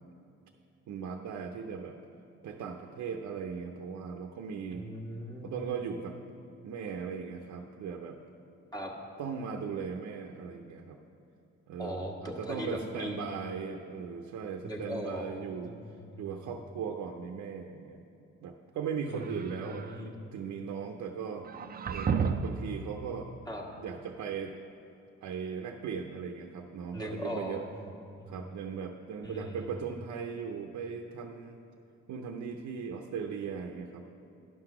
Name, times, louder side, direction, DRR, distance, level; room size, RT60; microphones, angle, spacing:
voice 1, 0.9-2.0 2.4-4.9 5.4-6.2 6.6-8.2 9.2-11.0 11.7-15.7 16.2-18.0 18.4-21.5 21.9-23.3 23.8-24.5 25.2-27.6 28.3-31.6 32.1-34.1, right 6 dB, 65° right, 3 dB, 0.7 m, -38 dB
voice 2, 4.7-5.6 8.7-8.9 11.8-13.2 14.6-15.2 15.6-16.6 19.0-19.3 19.6-20.1 23.5-23.6 26.9-27.9 28.2-28.5 29.2-29.6, equal, 15° left, -2 dB, 1.5 m, -39 dB
sound 1, 19.1-20.0 21.4-22.7, right 6 dB, 30° right, 0.4 m, -32 dB
10.5 x 5.9 x 6.0 m, 2.7 s
cardioid pair, 90°, 30 cm